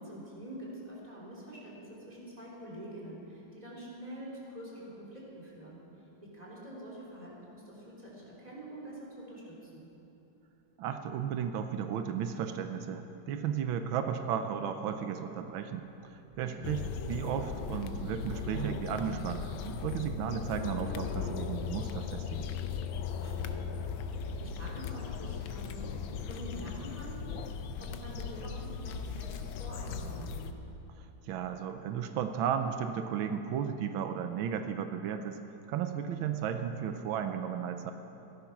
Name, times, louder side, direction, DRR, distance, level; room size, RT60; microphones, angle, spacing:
voice 1, 0.0-5.8 6.2-9.9 16.4-16.7 23.1-23.8 24.1-25.9 26.3-27.2 27.8-30.5, right 1 dB, 20° right, -5 dB, 3.5 m, -46 dB
voice 2, 10.8-16.8 17.1-19.5 19.8-22.5 31.0-35.4 35.7-37.9, right 8 dB, 90° right, 8 dB, 1.5 m, -34 dB
sound 1, 15.9-16.0 16.3-22.5, right 4 dB, 45° right, 1.1 m, -45 dB
sound 2, 16.6-30.5, left 6 dB, 80° left, 1.5 m, -38 dB
15.5 x 13.0 x 5.9 m, 2.9 s
omnidirectional pair, 2.1 m